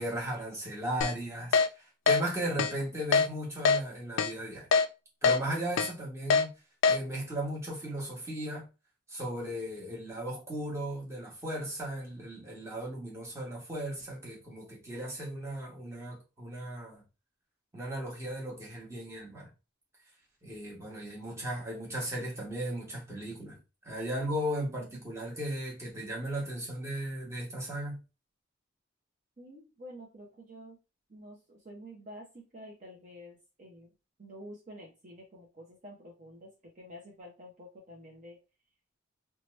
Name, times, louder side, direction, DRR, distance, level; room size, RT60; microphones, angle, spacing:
voice 1, 0.0-4.7 5.2-6.5 6.9-8.7 9.1-17.0 17.7-19.5 20.4-23.6 23.8-28.0, right 1 dB, 15° right, 1.1 m, -36 dB
Keyboard (musical), 1.0-1.1 1.5-1.7 2.1-2.2 2.6-2.7 3.1-3.3 3.7-3.8 4.2-4.3 4.7-4.9 5.2-5.4 5.8-5.9 6.3-6.4 6.8-7.0, left 5 dB, 70° left, 0.3 m, -23 dB
voice 2, 29.4-30.8 31.1-33.9 34.2-36.5 36.8-38.4, equal, 40° right, 0.7 m, -49 dB
2.8 x 2.3 x 3.1 m
head